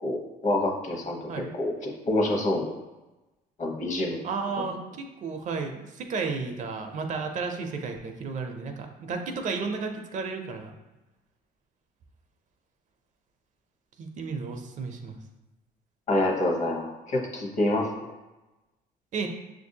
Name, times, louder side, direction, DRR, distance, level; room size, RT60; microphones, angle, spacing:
voice 1, 0.0-2.7 3.6-4.2 16.1-17.9, left 1 dB, 45° left, 0 dB, 0.9 m, -27 dB
voice 2, 4.2-10.7 14.0-15.2 19.1-19.3, right 4 dB, 45° right, 5 dB, 0.5 m, -33 dB
5.8 x 2.6 x 2.7 m, 1.1 s
cardioid pair, 110°, 17 cm